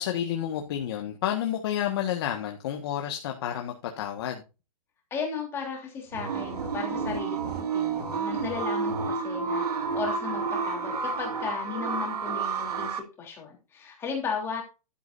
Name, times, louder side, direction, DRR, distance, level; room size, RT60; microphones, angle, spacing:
voice 1, 0.0-4.4, left 10 dB, 40° left, 3 dB, 1.5 m, -30 dB
voice 2, 5.1-14.6, left 6 dB, 10° left, 1 dB, 3.2 m, -35 dB
sound 1, 6.1-13.0, right 5 dB, 85° right, 2.1 m, -30 dB
12.0 x 9.9 x 2.6 m, 0.29 s
hypercardioid pair, 170°, 19 cm